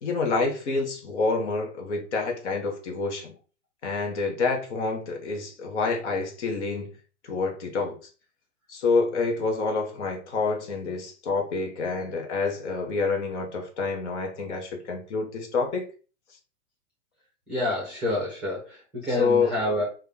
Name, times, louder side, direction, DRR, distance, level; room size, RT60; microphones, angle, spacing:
voice 1, 0.0-3.3 3.8-6.9 7.2-8.0 8.7-15.8 19.2-19.5, left 4 dB, 50° left, 0.9 m, -27 dB
voice 2, 17.5-19.8, left 1 dB, 5° right, 0.7 m, -28 dB
3.6 x 2.3 x 3.4 m
hypercardioid pair, 155°, 43 cm